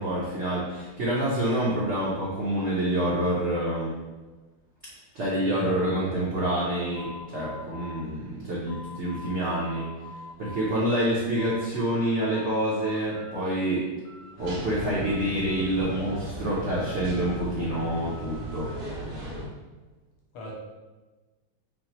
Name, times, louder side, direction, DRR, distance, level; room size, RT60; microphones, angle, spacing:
voice 1, 0.0-3.9 5.1-9.9 10.4-13.9 14.4-18.7, right 1 dB, 85° right, -6 dB, 0.6 m, -27 dB
voice 2, 5.4-5.9 20.3-20.5, equal, 90° left, -4 dB, 1.6 m, -40 dB
sound 1, 6.9-9.4 9.6-10.7 11.1-12.0 12.3-13.4 13.7-14.7 15.0-16.3 16.7-18.8, left 2 dB, 65° left, 0.7 m, -45 dB
sound 2, 14.4-19.5, right 2 dB, 55° right, 1.0 m, -37 dB
5.7 x 2.1 x 2.9 m, 1.2 s
omnidirectional pair, 2.2 m